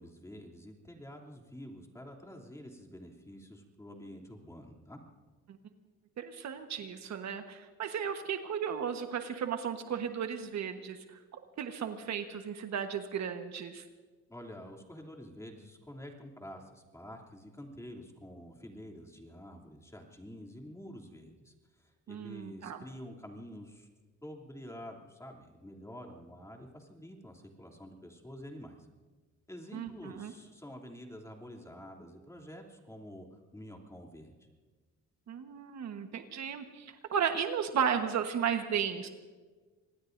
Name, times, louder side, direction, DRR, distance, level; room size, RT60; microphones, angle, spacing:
voice 1, 0.0-5.0 14.3-23.9 24.2-28.8 29.5-33.3 33.5-34.3, equal, 10° left, 0 dB, 2.9 m, -48 dB
voice 2, 6.2-11.2 11.6-13.8 22.1-22.8 29.7-30.3 35.3-39.1, right 7 dB, 65° right, 6 dB, 1.3 m, -34 dB
26.0 x 20.0 x 2.6 m, 1.3 s
cardioid pair, 90°, 30 cm